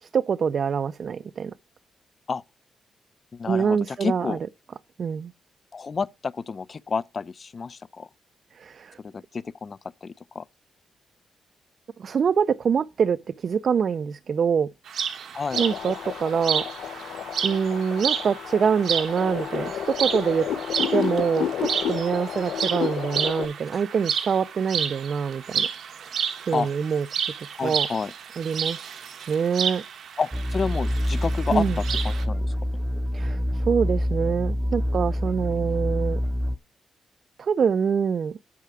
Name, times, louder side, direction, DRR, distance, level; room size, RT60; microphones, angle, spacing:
voice 1, 0.0-1.5 3.5-4.4 5.0-5.3 8.5-9.0 12.0-14.7 15.6-20.5 20.9-25.7 26.0-26.2 26.5-27.1 27.6-27.9 28.4-28.9 29.3-29.8 31.5-31.8 33.1-36.2 37.4-38.4, right 6 dB, 55° right, 0.4 m, -25 dB
voice 2, 3.3-4.4 5.7-8.1 9.0-10.4 15.3-15.6 26.5-26.7 27.6-28.1 30.2-32.5, left 5 dB, 40° left, 0.4 m, -30 dB
sound 1, 14.9-32.2, right 7 dB, 70° right, 1.1 m, -31 dB
sound 2, 15.5-23.5, left 9 dB, 85° left, 0.8 m, -31 dB
sound 3, 30.3-36.6, equal, 10° right, 0.7 m, -26 dB
8.4 x 5.6 x 4.8 m
cardioid pair, 105°, 0 cm